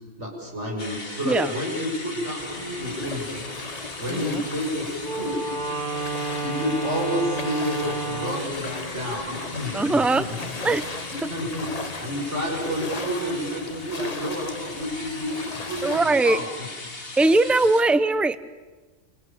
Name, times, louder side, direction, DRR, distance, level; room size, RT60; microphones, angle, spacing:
voice 1, 0.2-3.4 4.0-5.4 6.4-10.5 11.3-11.7 12.0-15.4 15.7-16.7, equal, 70° right, -1 dB, 7.6 m, -30 dB
sound 1, 0.8-17.8, left 2 dB, 55° left, 2.7 m, -39 dB
sound 2, 2.4-16.0, left 3 dB, 35° left, 1.3 m, -38 dB
voice 2, 4.1-4.4 9.7-10.3 10.6-10.9 15.8-16.4 17.2-18.4, right 2 dB, ahead, 14 dB, 0.7 m, -20 dB
Wind instrument woodwind instrument, 5.0-8.5, right 3 dB, 45° right, 3.1 m, -30 dB
27.0 x 27.0 x 7.3 m, 1.3 s
omnidirectional pair, 1.2 m